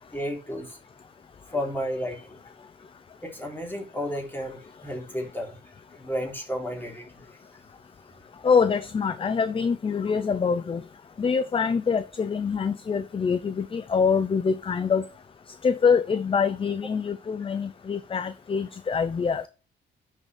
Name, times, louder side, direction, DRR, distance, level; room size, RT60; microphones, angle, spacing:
voice 1, 0.1-0.8 1.5-2.3 3.2-5.6 6.0-7.1, equal, 10° left, 3.6 m, -32 dB
voice 2, 8.4-10.8 11.2-15.0 15.6-19.5, left 6 dB, 25° left, 0.5 m, -25 dB
10.5 x 6.4 x 3.4 m
cardioid pair, 90°, 20 cm